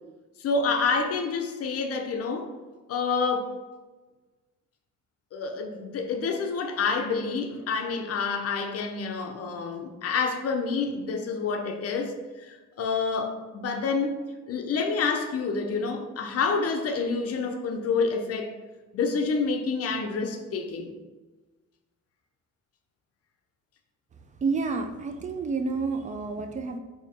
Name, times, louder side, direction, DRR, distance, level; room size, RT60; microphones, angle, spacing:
voice 1, 0.4-2.5 2.9-3.5 5.3-14.2 14.5-18.5 18.9-20.9, left 4 dB, 55° left, 4 dB, 0.5 m, -28 dB
voice 2, 24.4-26.8, right 4 dB, 25° right, 7 dB, 0.3 m, -29 dB
4.1 x 2.7 x 2.6 m, 1.3 s
cardioid pair, 90°, 30 cm